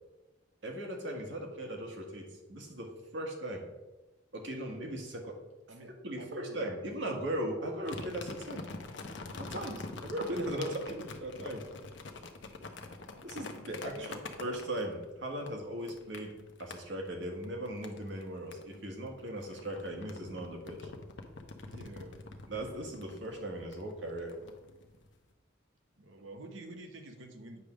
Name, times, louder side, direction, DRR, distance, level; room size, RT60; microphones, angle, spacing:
voice 1, 0.6-3.6 4.3-5.4 6.0-8.6 9.4-11.6 13.2-16.3 16.6-20.9 22.5-24.3, right 1 dB, 70° right, 2 dB, 1.5 m, -38 dB
voice 2, 5.7-6.7 10.8-11.0 13.9-14.2 21.7-22.2 22.9-23.4 26.0-27.7, right 1 dB, 90° right, 5 dB, 1.0 m, -48 dB
sound 1, 7.8-15.0 15.4-16.8 17.4-18.2 18.5-25.2, left 3 dB, 70° left, 0.8 m, -45 dB
8.4 x 3.4 x 6.1 m, 1.1 s
head